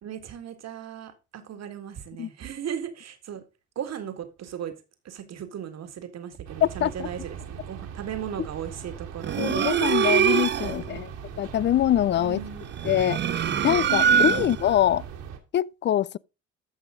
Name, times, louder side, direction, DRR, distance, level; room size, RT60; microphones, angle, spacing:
voice 1, 0.0-3.4 3.8-4.7 5.0-9.4 10.6-11.1 12.2-12.6 14.0-14.5, right 9 dB, 55° right, 1.9 m, -37 dB
sound 1, 6.4-15.4, right 7 dB, 70° right, 2.3 m, -40 dB
voice 2, 6.6-7.1 9.4-11.1 11.4-12.4 12.8-13.2 13.6-15.0 15.5-16.2, left 11 dB, 35° left, 0.4 m, -24 dB
sound 2, 9.2-10.8 12.7-14.7, right 7 dB, 35° right, 0.6 m, -23 dB
14.0 x 5.5 x 3.7 m
hypercardioid pair, 60°, 31 cm